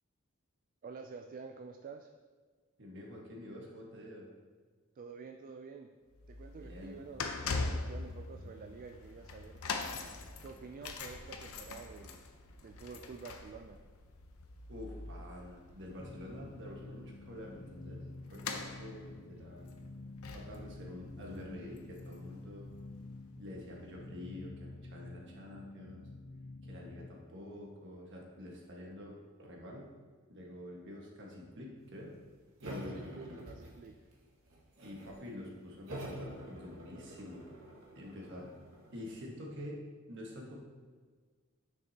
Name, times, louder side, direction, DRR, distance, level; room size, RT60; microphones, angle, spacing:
voice 1, 0.8-2.1 5.0-5.9 6.3-9.6 10.4-12.2 12.6-13.8 32.9-34.0, right 5 dB, 40° right, 6 dB, 0.3 m, -49 dB
voice 2, 2.8-4.3 6.6-7.0 14.7-19.7 20.3-22.7 23.3-26.0 26.6-29.9 30.3-32.2 32.6-33.4 34.8-37.5 37.9-38.5 38.9-39.8 40.1-40.6, left 1 dB, 60° right, -2 dB, 1.5 m, -47 dB
sound 1, 6.1-22.5 22.7-23.0 23.8-23.9, left 3 dB, 75° left, 0.7 m, -43 dB
sound 2, 16.0-27.1, left 2 dB, 35° left, 0.5 m, -49 dB
sound 3, 32.6-34.1 34.5-35.2 35.9-39.2, equal, 75° right, 1.8 m, -46 dB
9.3 x 6.5 x 2.9 m, 1.5 s
head